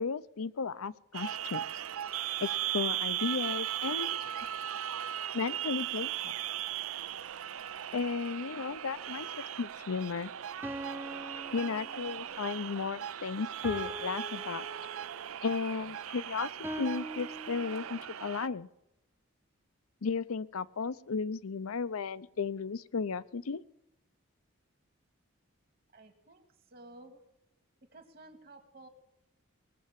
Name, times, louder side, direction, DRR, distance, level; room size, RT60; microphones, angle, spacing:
voice 1, 0.0-1.6 2.4-4.2 5.3-6.3 7.9-9.3 9.6-10.3 11.5-14.7 15.4-16.5 16.8-18.7 20.0-23.6, left 5 dB, 85° left, 16 dB, 0.6 m, -34 dB
sound 1, 1.1-18.5, right 11 dB, 80° right, 0.5 m, -38 dB
sound 2, 10.6-12.4 13.6-15.3 16.6-18.1, right 1 dB, 10° right, 0.6 m, -43 dB
voice 2, 25.9-27.2 27.9-28.9, right 2 dB, 45° right, 7 dB, 2.1 m, -53 dB
20.0 x 7.8 x 7.3 m, 0.88 s
head